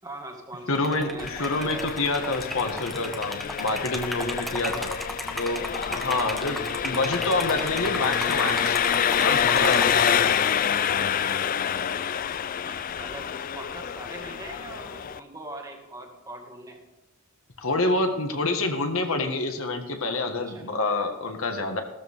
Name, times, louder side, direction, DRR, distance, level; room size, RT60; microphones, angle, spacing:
voice 1, 0.0-1.9 6.8-7.0 12.6-13.3 13.5-16.8 20.5-20.7, right 1 dB, 15° right, 1 dB, 2.0 m, -41 dB
voice 2, 0.7-4.9 5.4-5.6 5.9-6.6 6.8-8.8 9.2-10.2 17.6-21.8, left 2 dB, 65° left, 4 dB, 1.7 m, -27 dB
Liquid, 0.7-10.3, equal, ahead, 1.3 m, -35 dB
Engine, 1.2-15.2, left 8 dB, 40° left, 0.3 m, -27 dB
16.0 x 13.5 x 3.6 m, 1.0 s
head